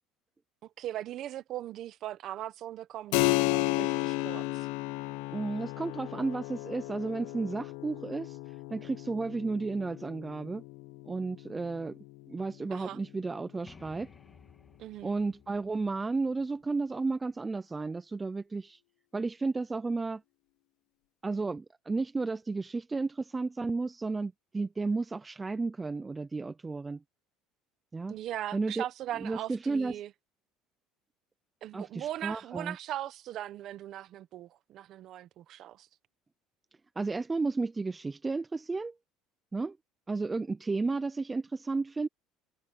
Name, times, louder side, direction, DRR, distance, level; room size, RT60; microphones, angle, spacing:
voice 1, 0.6-4.7 12.7-13.0 14.8-15.1 28.1-30.1 31.6-35.9, right 12 dB, 40° right, 0.9 m, -39 dB
Keyboard (musical), 3.1-13.3, left 21 dB, 85° left, 0.7 m, -34 dB
voice 2, 5.3-8.4 8.7-10.6 11.1-12.0 12.3-14.1 15.0-18.8 19.1-20.2 21.2-27.0 27.9-28.2 28.5-28.8 29.2-29.9 31.7-32.8 37.0-38.9 39.5-39.8 40.1-42.1, right 3 dB, 10° right, 0.3 m, -33 dB
sound 1, 13.7-17.3, left 4 dB, 15° left, 1.9 m, -57 dB
cardioid pair, 175°, 0 cm